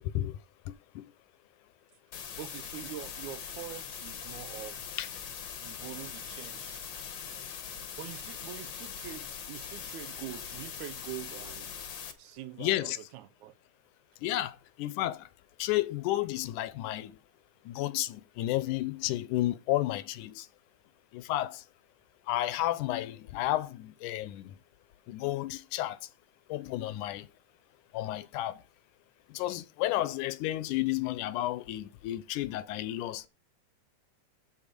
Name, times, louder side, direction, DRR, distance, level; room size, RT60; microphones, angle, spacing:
voice 1, 0.7-1.0 5.0-5.1 12.6-13.0 14.2-15.3 15.6-17.1 17.7-20.5 21.1-21.6 22.3-24.5 25.1-26.0 26.5-27.3 27.9-28.6 29.3-33.3, left 15 dB, 80° left, 2.1 m, -32 dB
sound 1, 2.1-12.1, left 7 dB, 55° left, 1.3 m, -42 dB
voice 2, 2.4-4.8 5.6-6.8 8.0-11.7 12.2-13.5, right 13 dB, 75° right, 2.1 m, -44 dB
8.5 x 7.8 x 5.1 m
omnidirectional pair, 3.7 m